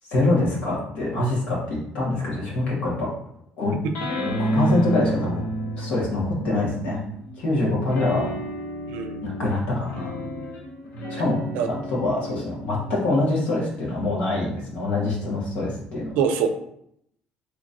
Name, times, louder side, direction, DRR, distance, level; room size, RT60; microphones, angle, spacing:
voice 1, 0.1-3.1 3.6-3.7 4.4-5.4 5.8-7.0 7.4-8.3 9.2-10.1 11.1-11.4 11.7-16.1, left 2 dB, 55° left, -5 dB, 1.3 m, -24 dB
sound 1, 3.9-7.3 7.8-14.6, right 1 dB, 70° left, 1.0 m, -31 dB
voice 2, 8.9-9.2 11.5-11.7 12.3-12.4 16.2-16.5, right 7 dB, 85° right, 7 dB, 0.5 m, -24 dB
4.0 x 2.9 x 2.5 m, 0.73 s
cardioid pair, 175°, 3 cm